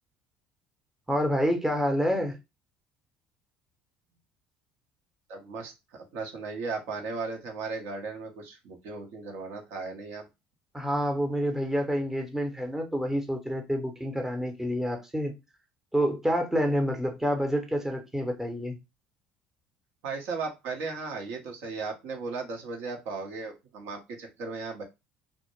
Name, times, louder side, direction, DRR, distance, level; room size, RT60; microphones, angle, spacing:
voice 1, 1.1-2.4 10.7-15.3 15.9-18.8, equal, 10° right, 0.7 m, -28 dB
voice 2, 5.3-10.3 20.0-24.8, right 4 dB, 65° right, 0.8 m, -36 dB
2.1 x 2.1 x 3.1 m
hypercardioid pair, 65°, 5 cm